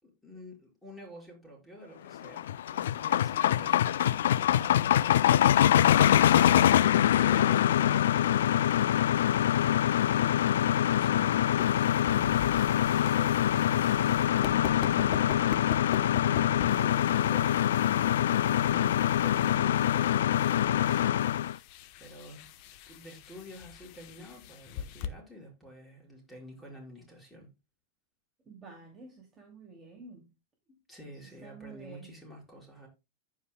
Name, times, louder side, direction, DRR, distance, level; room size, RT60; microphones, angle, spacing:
voice 1, 0.0-6.3 6.6-8.3 10.1-11.8 12.1-18.3 18.6-21.5 22.0-22.5 22.9-27.5 30.7-32.9, equal, 10° left, 5.4 m, -49 dB
sound 1, 2.1-21.5, left 11 dB, 75° left, 0.3 m, -24 dB
sound 2, 11.1-25.1, left 10 dB, 50° left, 0.9 m, -43 dB
sound 3, 12.1-18.8, left 4 dB, 35° left, 2.2 m, -47 dB
voice 2, 28.5-30.2 31.2-32.1, right 4 dB, 20° right, 2.7 m, -49 dB
14.5 x 5.2 x 2.3 m
hypercardioid pair, 110°, 0 cm